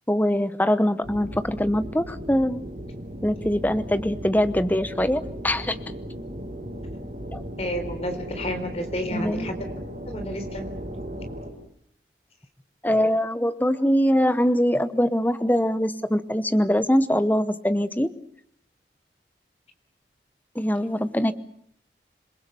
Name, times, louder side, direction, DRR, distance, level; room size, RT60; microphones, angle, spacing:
voice 1, 0.1-2.6 3.2-5.8 7.3-7.4 9.1-9.5 12.8-18.1 20.5-21.3, equal, 10° left, 12 dB, 0.9 m, -23 dB
sound 1, 1.0-11.5, equal, 50° right, 5.8 m, -36 dB
voice 2, 7.6-9.6 10.1-10.7, equal, 35° left, 7 dB, 3.8 m, -31 dB
27.5 x 22.0 x 6.9 m, 0.67 s
head